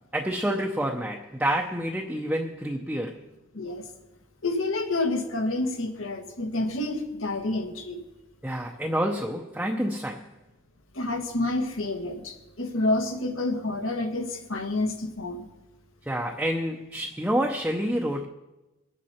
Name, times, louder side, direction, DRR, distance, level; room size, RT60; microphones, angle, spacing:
voice 1, 0.1-3.2 8.4-10.2 16.1-18.3, equal, 5° right, 0.7 m, -28 dB
voice 2, 3.5-3.9 4.4-8.0 10.9-15.4, left 2 dB, 80° left, 1.8 m, -28 dB
22.0 x 9.3 x 4.4 m
head